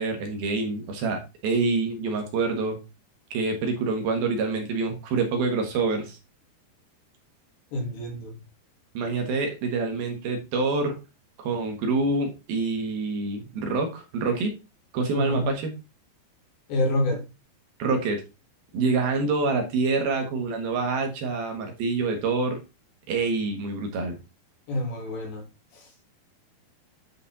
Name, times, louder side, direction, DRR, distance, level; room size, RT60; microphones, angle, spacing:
voice 1, 0.0-2.8 3.3-6.2 8.9-11.0 11.4-14.5 14.9-15.7 17.8-18.2 18.7-22.6 23.1-24.2, right 3 dB, 65° right, 3.2 m, -26 dB
voice 2, 7.7-8.3 15.1-15.6 16.7-17.3 24.7-25.4 25.7-25.9, left 1 dB, 75° left, 4.8 m, -28 dB
10.0 x 5.1 x 4.1 m
omnidirectional pair, 5.0 m